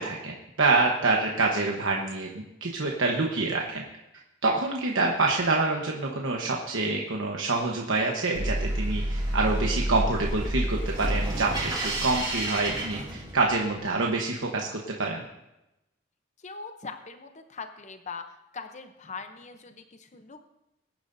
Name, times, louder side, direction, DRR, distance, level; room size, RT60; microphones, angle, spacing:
voice 1, 0.0-3.8 4.4-11.7 12.0-15.2, right 3 dB, 85° right, -1 dB, 1.2 m, -26 dB
sound 1, 8.3-13.6, right 1 dB, 25° right, 2.4 m, -29 dB
voice 2, 16.4-18.2 18.5-20.4, left 4 dB, 40° left, 7 dB, 0.7 m, -41 dB
20.5 x 10.5 x 2.7 m, 0.91 s
head